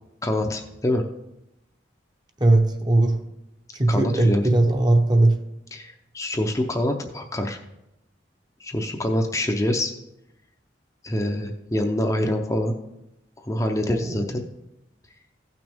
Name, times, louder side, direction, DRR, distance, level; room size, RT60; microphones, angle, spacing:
voice 1, 0.2-1.0 3.9-4.4 5.7-7.6 8.6-9.9 11.0-12.7 13.4-14.4, left 1 dB, 15° left, 3 dB, 0.6 m, -25 dB
voice 2, 2.4-3.2 3.7-5.4 13.9-14.3, right 2 dB, 20° right, 5 dB, 0.8 m, -19 dB
15.5 x 6.0 x 3.5 m, 0.89 s
head